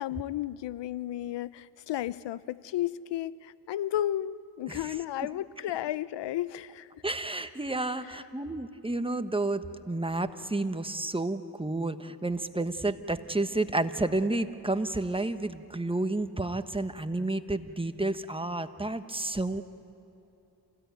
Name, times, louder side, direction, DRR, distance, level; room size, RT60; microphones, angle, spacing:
voice 1, 0.0-6.9 8.0-8.1, left 12 dB, 80° left, 18 dB, 0.6 m, -33 dB
voice 2, 7.0-19.6, right 2 dB, 15° right, 9 dB, 1.2 m, -31 dB
28.0 x 16.5 x 9.4 m, 3.0 s
cardioid pair, 55°, 42 cm